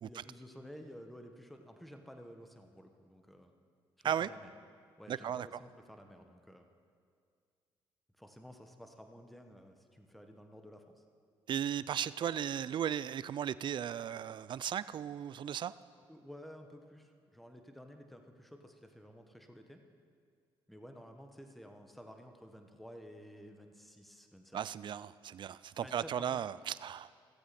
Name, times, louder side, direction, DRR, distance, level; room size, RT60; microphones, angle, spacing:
voice 1, 0.0-3.5 4.0-4.5 5.0-6.7 8.2-11.0 16.1-19.8 20.7-24.6 25.8-26.4, equal, ahead, 5 dB, 1.1 m, -53 dB
voice 2, 5.1-5.5 11.5-15.7 24.5-27.1, right 9 dB, 50° right, 17 dB, 0.4 m, -36 dB
16.0 x 7.9 x 4.2 m, 2.2 s
supercardioid pair, 65°, 10 cm